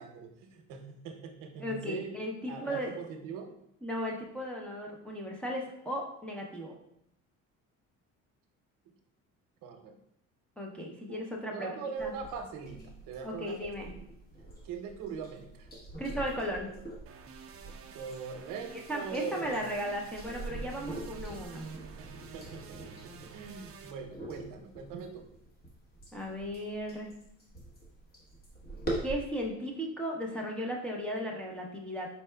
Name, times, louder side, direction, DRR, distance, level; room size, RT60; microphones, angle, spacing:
voice 1, 0.0-2.1 2.4-3.6 9.6-10.0 11.1-11.2 11.5-13.7 14.6-15.7 16.0-16.1 17.9-19.7 22.0-25.2, right 6 dB, 85° right, 5 dB, 0.7 m, -42 dB
voice 2, 1.6-2.9 3.8-6.8 10.6-12.1 13.2-13.9 16.0-16.7 18.9-21.6 26.1-27.1 29.0-32.1, equal, 5° left, -3 dB, 0.6 m, -36 dB
sound 1, 12.0-29.2, right 2 dB, 30° left, 1.1 m, -44 dB
sound 2, 17.1-23.9, right 5 dB, 45° right, 0.5 m, -49 dB
4.5 x 4.1 x 2.2 m, 0.77 s
cardioid pair, 125°, 32 cm